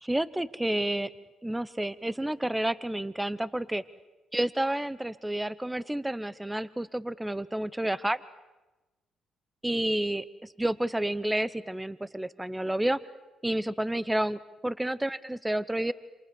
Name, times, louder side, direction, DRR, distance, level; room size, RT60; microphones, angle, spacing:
voice 1, 0.0-1.1 1.4-3.8 4.3-8.2 9.6-13.0 13.4-15.9, right 1 dB, 10° right, 19 dB, 0.8 m, -30 dB
28.0 x 27.0 x 7.0 m, 1.1 s
cardioid pair, 90°, 0 cm